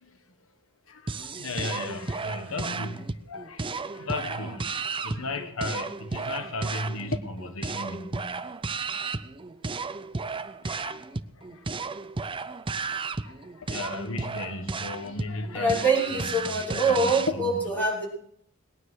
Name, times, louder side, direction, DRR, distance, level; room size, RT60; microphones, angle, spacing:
voice 1, 0.9-8.4 10.6-11.0 11.4-11.7 12.8-17.5, left 3 dB, 70° left, 8 dB, 1.1 m, -36 dB
sound 1, 1.1-17.3, right 4 dB, 25° right, 0.6 m, -34 dB
voice 2, 15.5-18.1, right 2 dB, 10° left, -5 dB, 5.9 m, -24 dB
20.0 x 9.7 x 6.4 m, 0.67 s
head